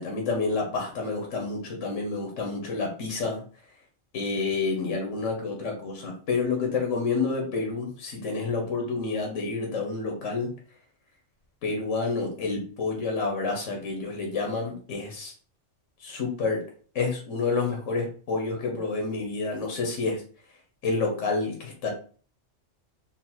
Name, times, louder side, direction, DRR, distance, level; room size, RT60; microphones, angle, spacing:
voice 1, 0.0-3.4 4.1-10.5 11.6-15.3 16.0-16.6 16.9-20.2 20.8-21.9, left 4 dB, 80° left, 0 dB, 1.3 m, -29 dB
3.9 x 2.0 x 4.3 m, 0.41 s
omnidirectional pair, 1.3 m